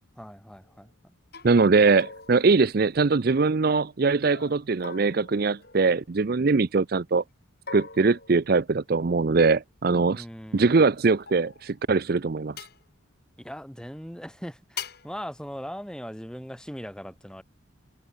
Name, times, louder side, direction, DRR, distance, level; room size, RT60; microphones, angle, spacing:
voice 1, 0.2-0.9 9.9-10.9 13.4-17.4, equal, 5° left, 4.7 m, -40 dB
sound 1, 0.7-0.9 1.3-1.6 2.0-3.4 4.2-6.5 7.7-9.1 10.6-11.8 12.6-12.8 14.8-15.2, left 6 dB, 50° left, 4.3 m, -43 dB
voice 2, 1.4-7.2 7.7-10.2 10.5-12.6, right 4 dB, 45° right, 0.5 m, -22 dB
head